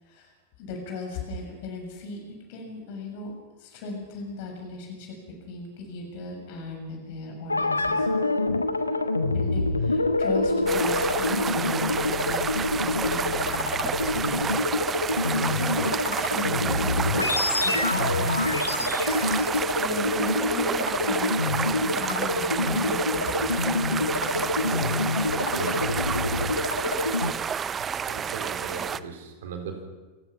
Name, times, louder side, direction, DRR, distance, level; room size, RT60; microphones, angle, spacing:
voice 1, 0.6-2.2 2.5-3.3 3.6-5.1 5.5-8.1 9.2-14.6 15.0-17.3 17.6-18.6 19.8-21.4 21.7-23.3 23.6-25.1, left 3 dB, 50° left, 2 dB, 7.0 m, -37 dB
sound 1, 7.5-27.3, left 2 dB, 80° left, 1.1 m, -26 dB
sound 2, 10.7-29.0, right 7 dB, 20° right, 0.7 m, -30 dB
voice 2, 25.5-25.9 27.2-27.4 28.1-29.8, right 6 dB, 55° right, 4 dB, 4.0 m, -37 dB
28.0 x 16.0 x 6.1 m, 1.3 s
figure-of-eight pair, 90°, 0 cm